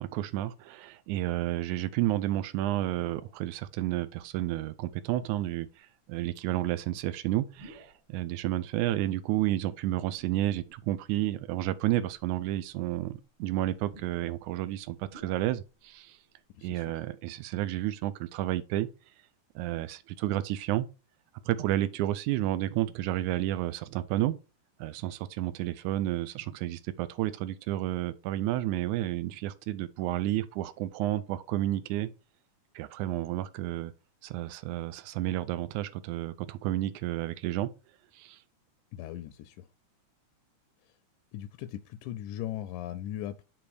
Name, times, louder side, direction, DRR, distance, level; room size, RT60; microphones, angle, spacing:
voice 1, 0.0-16.2 16.6-18.9 19.6-20.9 21.5-24.4 24.8-32.1 32.8-33.9 34.2-37.7 38.1-38.4, right 14 dB, 85° right, 2.0 m, -31 dB
sound 1, 2.5-3.5 4.1-4.2 5.3-5.6 6.4-8.1 9.2-10.8 11.3-11.4 12.0-16.0 16.3-16.4 16.6-17.1, right 1 dB, 45° right, 2.4 m, -57 dB
voice 2, 16.6-17.0 38.9-39.7 40.9-41.0 41.3-43.4, left 12 dB, 85° left, 2.0 m, -39 dB
7.0 x 3.9 x 4.7 m
omnidirectional pair, 3.5 m